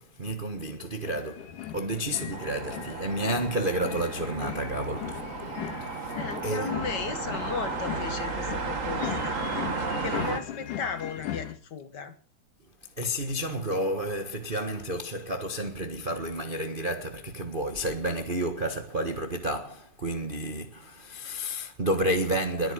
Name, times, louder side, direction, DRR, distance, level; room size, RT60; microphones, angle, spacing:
voice 1, 0.0-6.2 6.4-6.7 13.0-22.7, right 1 dB, 70° right, 0.4 m, -31 dB
sound 1, 1.0-11.5, left 10 dB, 85° left, 3.2 m, -39 dB
sound 2, 2.3-10.4, right 4 dB, 35° right, 1.5 m, -34 dB
voice 2, 6.1-9.4 10.0-12.1, left 5 dB, 45° left, 1.6 m, -35 dB
22.0 x 9.6 x 6.3 m
omnidirectional pair, 3.6 m